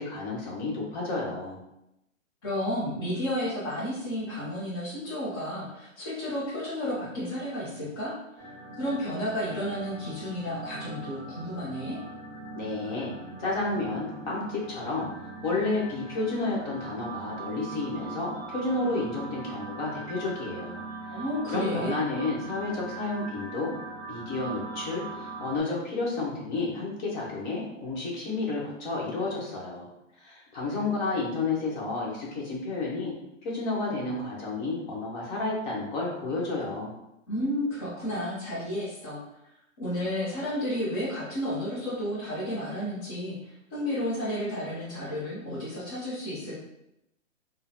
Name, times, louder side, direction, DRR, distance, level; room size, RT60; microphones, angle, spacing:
voice 1, 0.0-1.6 12.5-13.1 13.4-15.1 15.4-20.8 21.5-23.7 24.1-29.9 30.2-33.1 33.4-36.9, left 3 dB, 35° left, -4 dB, 0.9 m, -31 dB
voice 2, 2.4-8.5 8.8-12.0 21.1-22.0 37.3-39.2 39.8-46.6, equal, 20° left, -10 dB, 0.4 m, -32 dB
sound 1, 8.4-25.6, right 3 dB, 30° right, 0.5 m, -41 dB
3.7 x 2.0 x 2.7 m, 0.85 s
hypercardioid pair, 150°, 39 cm